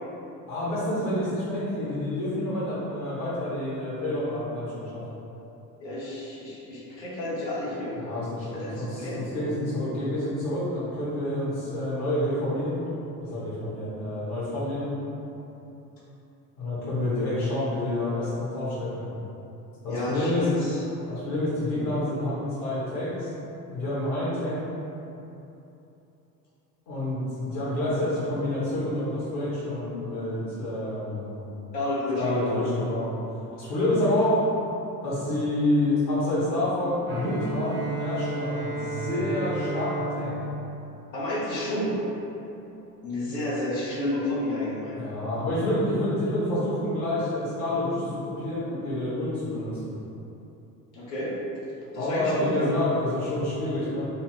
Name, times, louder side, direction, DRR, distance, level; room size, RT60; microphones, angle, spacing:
voice 1, 0.5-5.0 8.0-12.8 13.2-14.9 16.6-19.1 19.8-20.5 21.1-23.3 23.7-24.6 26.9-31.4 32.2-33.1 33.5-34.4 35.0-40.4 45.0-49.9 51.9-54.1, left 1 dB, 60° left, -9 dB, 1.3 m, -28 dB
voice 2, 5.8-7.9 8.5-9.2 19.9-21.0 31.7-32.8 41.1-42.0 43.0-45.0 50.9-51.4 51.9-52.7, left 1 dB, 80° left, -7 dB, 1.1 m, -30 dB
Bowed string instrument, 37.1-41.9, right 2 dB, 25° right, 0.7 m, -33 dB
4.1 x 2.3 x 3.6 m, 3.0 s
figure-of-eight pair, 65°, 49 cm